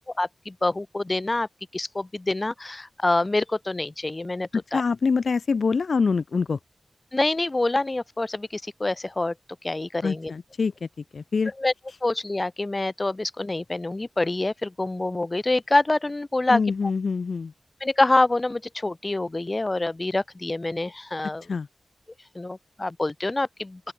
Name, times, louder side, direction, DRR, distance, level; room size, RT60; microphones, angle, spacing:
voice 1, 0.2-4.8 7.1-9.3 9.6-10.3 11.6-11.7 12.0-16.6 17.8-21.4 22.3-23.9, left 2 dB, 30° left, 1.5 m, -26 dB
voice 2, 4.5-6.6 10.0-10.9 11.1-11.5 16.5-17.5 21.5-21.7, left 5 dB, 80° left, 0.6 m, -25 dB
open air
wide cardioid pair, 105°, 0 cm